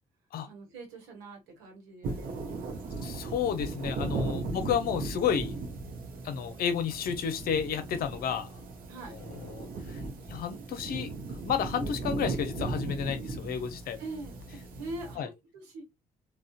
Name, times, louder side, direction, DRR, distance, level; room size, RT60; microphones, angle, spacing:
voice 1, 0.4-3.1 4.4-4.7 8.9-9.2 14.0-15.8, right 2 dB, 65° right, 1.2 m, -44 dB
sound 1, 2.0-15.2, right 3 dB, 45° right, 0.8 m, -37 dB
voice 2, 3.0-5.6 6.2-8.5 9.1-10.0 10.3-14.0 15.2-15.3, left 7 dB, 50° left, 0.7 m, -31 dB
3.7 x 2.3 x 2.4 m
figure-of-eight pair, 40°, 20 cm